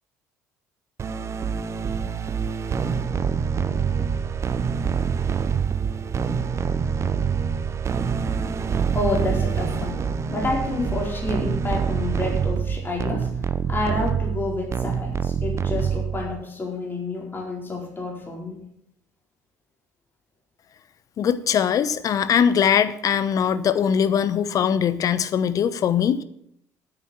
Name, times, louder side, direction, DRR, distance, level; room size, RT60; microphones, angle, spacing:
sound 1, 1.0-16.4, right 6 dB, 35° right, 0.8 m, -26 dB
voice 1, 8.9-18.6, left 2 dB, 25° left, -2 dB, 4.6 m, -29 dB
voice 2, 21.2-26.2, left 8 dB, 45° left, 14 dB, 0.8 m, -21 dB
9.2 x 9.1 x 7.2 m, 0.73 s
figure-of-eight pair, 55°, 8 cm